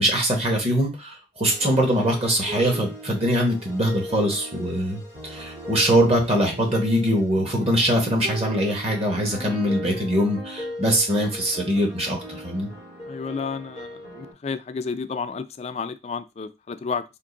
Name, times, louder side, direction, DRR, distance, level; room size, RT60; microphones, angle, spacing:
voice 1, 0.0-12.2 12.4-12.7, equal, 35° right, 1.1 m, -22 dB
sound 1, 1.4-14.3, equal, 70° right, 2.3 m, -38 dB
voice 2, 13.1-17.0, left 5 dB, 35° left, 0.3 m, -31 dB
3.6 x 2.6 x 3.8 m
head